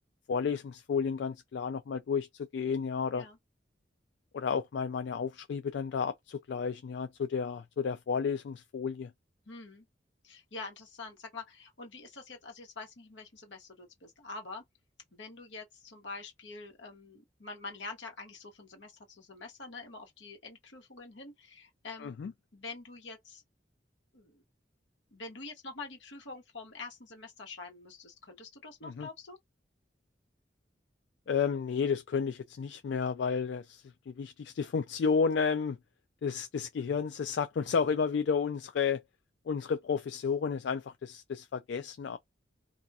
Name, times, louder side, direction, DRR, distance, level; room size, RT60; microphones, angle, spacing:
voice 1, 0.3-3.3 4.3-9.1 22.0-22.3 28.8-29.1 31.3-35.8 36.2-39.0 39.5-42.2, left 6 dB, 70° left, 0.3 m, -32 dB
voice 2, 9.5-9.9 10.2-14.6 15.1-22.1 22.5-23.4 24.1-24.4 25.1-29.4, left 3 dB, 90° left, 1.2 m, -46 dB
2.4 x 2.3 x 4.0 m
head